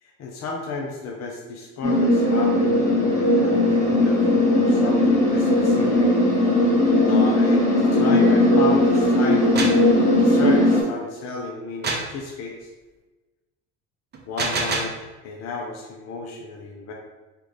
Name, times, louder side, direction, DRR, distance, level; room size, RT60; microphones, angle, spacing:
voice 1, 0.0-6.1 7.0-9.9 10.2-12.7 14.2-14.9 15.2-16.9, left 3 dB, 45° left, -1 dB, 0.6 m, -33 dB
sound 1, 1.8-10.8, left 1 dB, 20° left, 1.3 m, -18 dB
sound 2, 9.3-9.9 11.8-12.2 14.1-15.0, right 3 dB, 25° right, 0.7 m, -26 dB
3.4 x 2.4 x 3.1 m, 1.2 s
hypercardioid pair, 80°, 39 cm